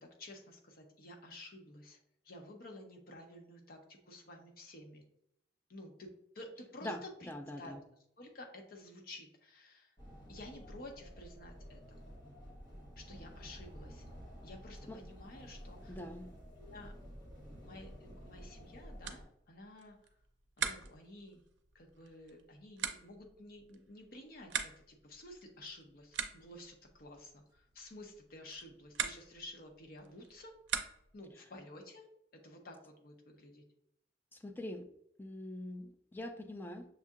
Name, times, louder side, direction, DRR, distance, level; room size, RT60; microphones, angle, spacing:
voice 1, 0.0-2.0 2.2-5.0 5.7-7.3 7.6-7.7 8.2-10.0 10.3-12.0 13.0-14.1 14.4-16.0 16.6-16.9 17.6-20.1 20.6-21.4 21.7-30.6 31.1-32.1 32.3-33.6, left 1 dB, 55° left, 3 dB, 0.8 m, -52 dB
voice 2, 7.3-7.8 14.9-15.0 15.9-16.3 34.3-34.8 35.2-36.9, left 1 dB, 10° left, 6 dB, 0.4 m, -43 dB
sound 1, 10.0-19.2, equal, 25° left, 1.2 m, -51 dB
sound 2, 19.0-31.3, right 8 dB, 80° right, 0.5 m, -44 dB
6.4 x 2.7 x 2.4 m, 0.74 s
head